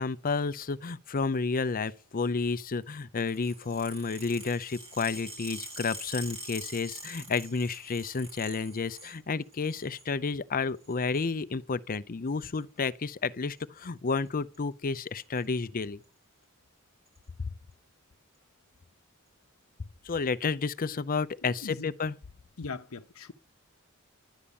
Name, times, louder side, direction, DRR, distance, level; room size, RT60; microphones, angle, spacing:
voice 1, 0.0-16.0 20.0-22.1, left 4 dB, 40° left, 0.6 m, -31 dB
sound 1, 3.3-9.2 9.5-10.1 10.8-11.3 12.4-12.6 13.6-13.9 14.1-14.3 14.5-14.6 14.9-15.4 16.0-16.1 17.1-17.2, equal, 25° right, 4.7 m, -44 dB
voice 2, 21.4-21.9 22.6-23.3, left 4 dB, 75° left, 0.8 m, -40 dB
11.5 x 9.8 x 7.0 m
head